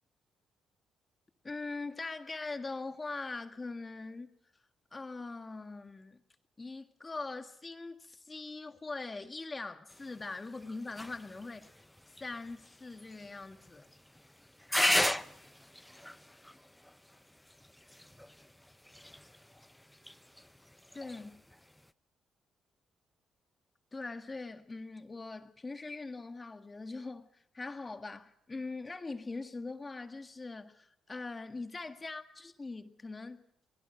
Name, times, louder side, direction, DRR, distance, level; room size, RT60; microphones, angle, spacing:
voice 1, 1.4-4.3 4.9-6.2 6.6-11.7 12.2-13.9 20.9-21.4 23.9-33.4, left 3 dB, 25° left, 1.8 m, -42 dB
sound 1, 9.9-21.9, left 1 dB, 5° left, 0.7 m, -38 dB
30.0 x 21.5 x 4.6 m
cardioid pair, 90°, 0 cm